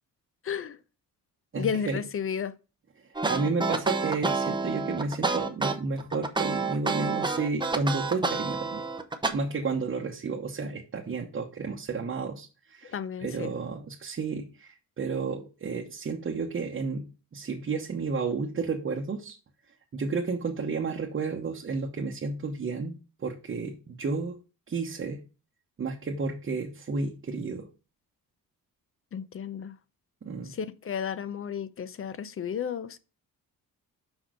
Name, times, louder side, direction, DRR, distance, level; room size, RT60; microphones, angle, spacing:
voice 1, 0.4-0.8 1.6-2.5 12.8-13.5 29.1-29.7 30.4-33.0, left 7 dB, 40° left, 0.6 m, -33 dB
voice 2, 1.5-2.0 3.3-8.8 9.3-12.9 13.2-19.3 19.9-24.4 24.7-25.2 25.8-27.7 30.2-30.5, right 4 dB, 35° right, 1.1 m, -32 dB
sound 1, 3.1-9.3, right 3 dB, 15° right, 0.8 m, -28 dB
6.2 x 5.5 x 4.9 m
cardioid pair, 135°, 35 cm